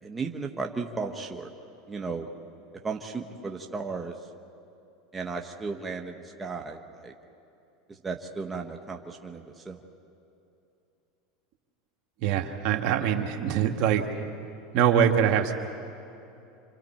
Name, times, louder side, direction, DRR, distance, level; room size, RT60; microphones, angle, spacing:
voice 1, 0.0-1.5 1.9-2.3 2.8-4.2 5.1-7.1 7.9-9.8, right 4 dB, 15° right, 2 dB, 1.3 m, -35 dB
voice 2, 12.2-14.0 14.7-15.5, right 9 dB, 55° right, 3 dB, 1.9 m, -23 dB
28.5 x 26.5 x 4.5 m, 2.7 s
supercardioid pair, 125°, 0 cm